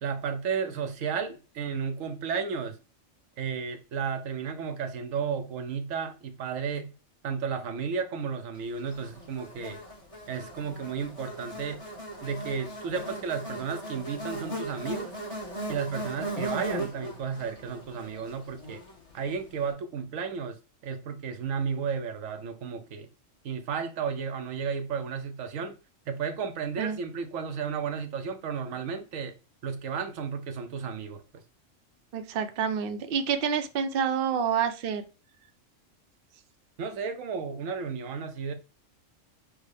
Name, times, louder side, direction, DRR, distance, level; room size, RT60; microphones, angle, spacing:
voice 1, 0.0-2.8 3.4-6.9 7.2-9.8 10.3-11.8 12.2-15.1 15.7-18.8 19.1-23.1 23.4-25.8 26.1-29.4 29.6-31.2 36.8-38.5, right 6 dB, 85° right, 1.1 m, -33 dB
Buzz, 8.9-19.3, right 1 dB, 25° left, 1.2 m, -38 dB
voice 2, 32.1-35.0, right 7 dB, 55° right, 0.7 m, -28 dB
6.2 x 2.2 x 3.3 m
omnidirectional pair, 1.3 m